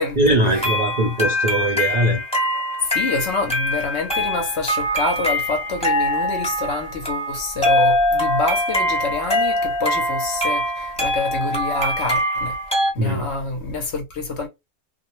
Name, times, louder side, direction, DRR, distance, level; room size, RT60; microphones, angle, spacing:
voice 1, 0.2-2.2 13.0-13.3, right 1 dB, 60° right, 0.4 m, -20 dB
sound 1, 0.5-12.9, equal, 5° left, 0.9 m, -23 dB
voice 2, 2.8-12.6 12.9-14.5, left 3 dB, 60° left, 0.8 m, -26 dB
2.5 x 2.0 x 2.9 m
omnidirectional pair, 1.5 m